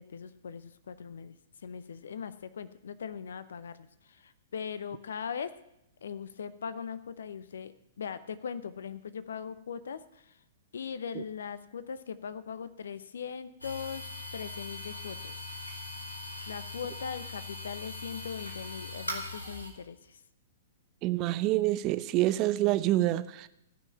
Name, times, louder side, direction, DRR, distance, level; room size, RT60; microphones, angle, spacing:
voice 1, 0.0-5.5 6.0-10.4 10.7-15.3 16.4-20.2, left 7 dB, 65° left, 15 dB, 0.7 m, -40 dB
sound 1, 13.6-19.7, left 2 dB, 90° left, 2.4 m, -40 dB
voice 2, 21.0-23.5, right 16 dB, 35° right, 14 dB, 0.7 m, -27 dB
15.5 x 5.8 x 8.6 m, 0.82 s
figure-of-eight pair, 110°, 0 cm